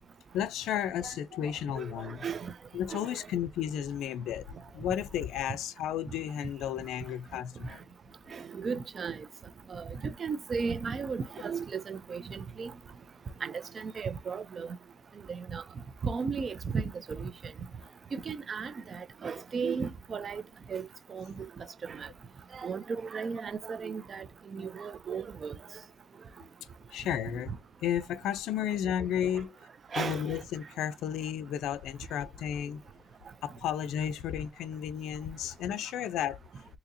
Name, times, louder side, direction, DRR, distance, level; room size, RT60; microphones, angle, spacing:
voice 1, 0.3-2.2 2.7-7.8 26.9-27.5 27.8-29.6 30.0-32.8 33.4-36.4, left 9 dB, 85° left, 0.4 m, -33 dB
voice 2, 1.4-2.5 2.9-3.0 8.3-9.2 9.7-12.7 13.4-14.8 15.3-15.6 16.0-17.3 18.1-20.4 20.7-21.5 21.8-22.1 22.5-25.5 29.9-30.2, right 5 dB, 45° right, 0.5 m, -35 dB
3.9 x 2.8 x 2.6 m
cardioid pair, 90°, 0 cm